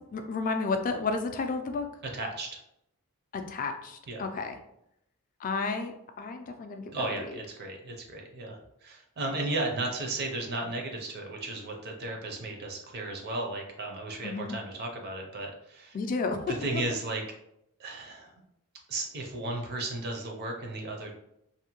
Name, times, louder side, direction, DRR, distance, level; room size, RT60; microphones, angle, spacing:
voice 1, 0.1-1.9 3.3-4.5 5.4-7.1 14.2-14.5 15.9-16.5 16.7-16.8, left 4 dB, 40° left, 6 dB, 0.3 m, -32 dB
voice 2, 2.1-2.6 4.1-4.2 6.9-16.0 16.5-17.2 17.8-18.3 18.9-21.1, right 2 dB, 45° right, 1 dB, 0.5 m, -35 dB
2.6 x 2.1 x 2.9 m, 0.78 s
head